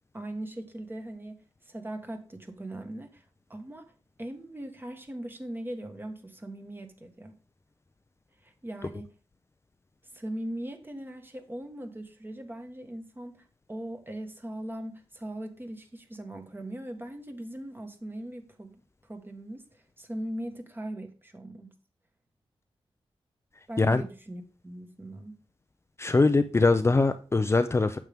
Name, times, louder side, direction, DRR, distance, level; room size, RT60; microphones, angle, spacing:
voice 1, 0.1-3.9 4.2-7.3 8.4-9.1 10.1-18.8 19.0-21.7 23.7-25.4, right 1 dB, 20° right, 1.5 m, -40 dB
voice 2, 26.0-28.0, left 3 dB, 25° left, 0.5 m, -22 dB
9.1 x 7.4 x 3.6 m
wide cardioid pair, 95°, 10 cm